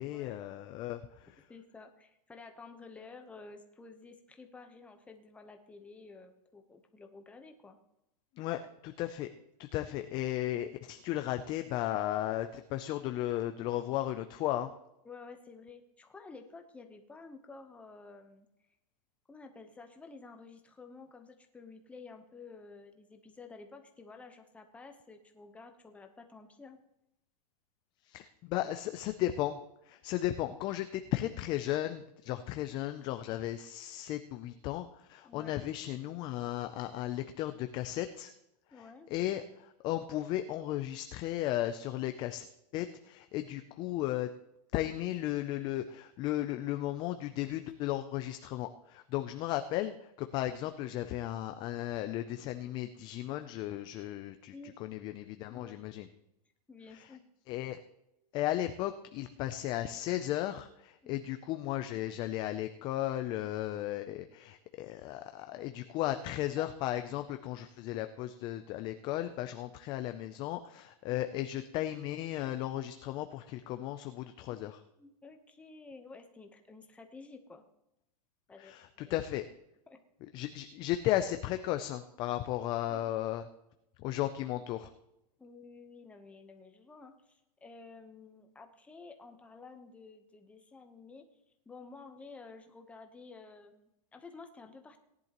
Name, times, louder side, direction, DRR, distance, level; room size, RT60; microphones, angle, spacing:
voice 1, 0.0-1.4 8.4-9.3 9.6-14.7 28.0-29.6 29.8-38.3 38.7-42.5 42.7-44.3 44.7-54.5 54.8-56.1 56.9-57.2 57.5-57.8 58.3-74.8 78.6-79.5 80.3-83.5 84.0-84.9, left 13 dB, 20° left, 8 dB, 0.4 m, -35 dB
voice 2, 1.5-7.8 15.0-18.5 19.3-26.8 32.3-32.4 35.2-35.6 38.7-39.1 54.5-54.8 55.5-55.8 56.7-57.2 61.0-61.2 66.6-66.7 75.0-77.6 78.5-79.2 79.9-80.0 85.4-91.3 91.7-95.0, left 4 dB, 5° left, 5 dB, 0.8 m, -52 dB
18.0 x 10.5 x 2.9 m, 0.86 s
supercardioid pair, 160°, 20 cm